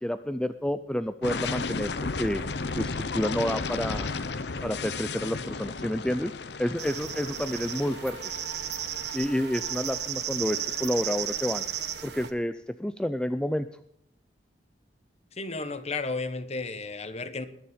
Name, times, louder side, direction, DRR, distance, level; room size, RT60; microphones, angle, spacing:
voice 1, 0.0-2.4 2.7-4.1 4.6-6.3 6.6-8.2 9.1-11.6 12.0-13.7, equal, 5° left, 11 dB, 0.4 m, -29 dB
sound 1, 1.2-11.0, left 4 dB, 65° left, 0.8 m, -34 dB
sound 2, 6.8-12.3, right 9 dB, 65° right, 1.2 m, -34 dB
voice 2, 15.4-17.5, left 3 dB, 40° left, 12 dB, 1.1 m, -33 dB
20.5 x 7.1 x 5.1 m, 0.73 s
head